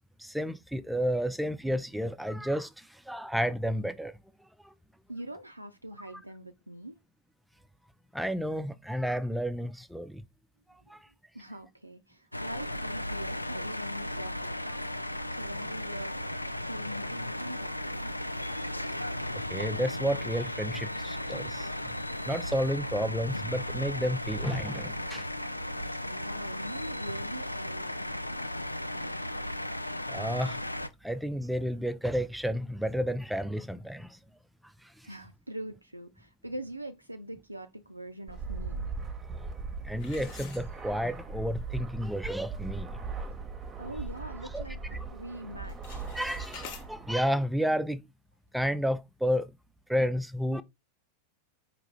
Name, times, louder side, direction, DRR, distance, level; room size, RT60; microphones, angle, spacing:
voice 1, 0.2-4.1 8.1-10.2 10.9-11.0 19.5-21.7 22.3-25.3 30.1-30.6 31.0-34.2 39.8-43.0 44.5-44.6 46.1-48.0 48.5-49.5 49.9-50.6, equal, ahead, 0.4 m, -31 dB
voice 2, 5.1-7.0 11.3-14.9 15.3-16.3 16.7-18.1 26.0-29.0 35.0-38.9 43.8-46.1, right 1 dB, 85° right, 0.4 m, -43 dB
sound 1, 12.3-30.9, left 1 dB, 85° left, 0.3 m, -35 dB
Fixed-wing aircraft airplane, 38.3-47.1, right 4 dB, 20° right, 0.8 m, -39 dB
sound 2, 40.0-41.2 41.7-41.8 42.4-42.5 42.8-43.1 43.6-44.7 45.0-45.3 45.6-46.9, left 7 dB, 45° left, 0.9 m, -47 dB
4.9 x 2.9 x 3.6 m
figure-of-eight pair, 90°, 0 cm